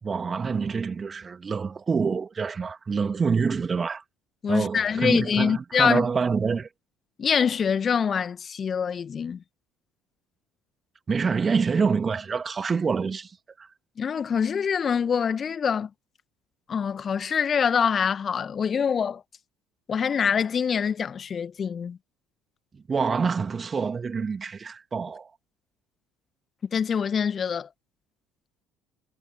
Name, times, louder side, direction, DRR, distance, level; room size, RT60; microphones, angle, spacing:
voice 1, 0.0-4.0 4.5-6.7 11.1-13.7 22.7-25.3, right 5 dB, 30° right, 2.9 m, -26 dB
voice 2, 4.4-6.1 7.2-9.4 14.0-15.9 16.7-19.2 19.9-22.0 26.7-27.7, left 7 dB, 35° left, 1.9 m, -25 dB
figure-of-eight pair, 55°, 0 cm